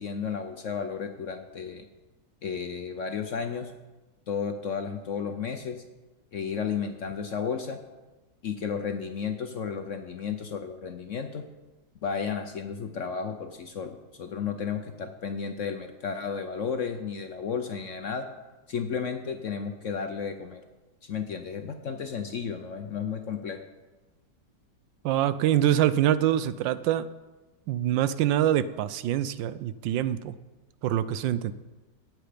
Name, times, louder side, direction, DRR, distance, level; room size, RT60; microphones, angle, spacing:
voice 1, 0.0-1.9 2.4-3.7 4.3-5.8 6.3-7.8 8.4-11.4 12.0-18.3 18.7-20.6 21.0-23.6, left 6 dB, 60° left, 7 dB, 0.8 m, -33 dB
voice 2, 25.0-27.1 27.7-30.3 30.8-31.5, right 11 dB, 85° right, 15 dB, 1.3 m, -25 dB
17.5 x 7.9 x 5.1 m, 1.2 s
omnidirectional pair, 2.0 m